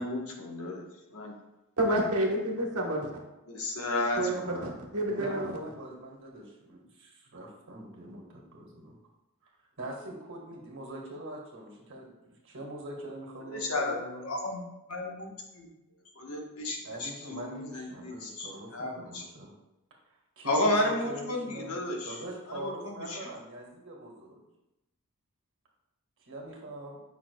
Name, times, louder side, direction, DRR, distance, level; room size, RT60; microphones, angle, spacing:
voice 1, 0.0-0.8 1.1-1.3 3.5-4.2 4.5-4.7 13.5-15.7 16.2-19.2 20.5-22.2 22.5-23.3, left 1 dB, 75° left, 0 dB, 1.2 m, -33 dB
voice 2, 1.8-3.1 4.2-5.5, right 1 dB, 80° right, 0 dB, 1.3 m, -29 dB
voice 3, 5.1-9.0 9.8-14.3 16.8-19.5 20.4-21.8 22.0-24.4 26.2-27.0, right 1 dB, 60° right, 0 dB, 1.7 m, -42 dB
8.7 x 5.8 x 2.3 m, 0.95 s
head